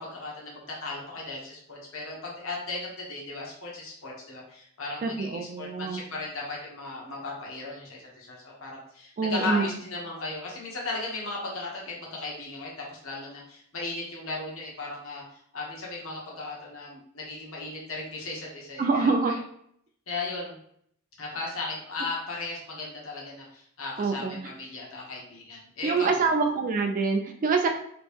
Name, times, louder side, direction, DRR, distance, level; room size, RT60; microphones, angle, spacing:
voice 1, 0.0-15.2 15.5-19.4 20.1-20.6 21.2-26.3, left 3 dB, 65° left, -3 dB, 1.0 m, -36 dB
voice 2, 5.0-6.0 9.2-9.7 18.8-19.3 24.0-24.4 25.8-27.7, right 4 dB, 40° right, 4 dB, 0.3 m, -25 dB
3.0 x 2.6 x 3.4 m, 0.67 s
head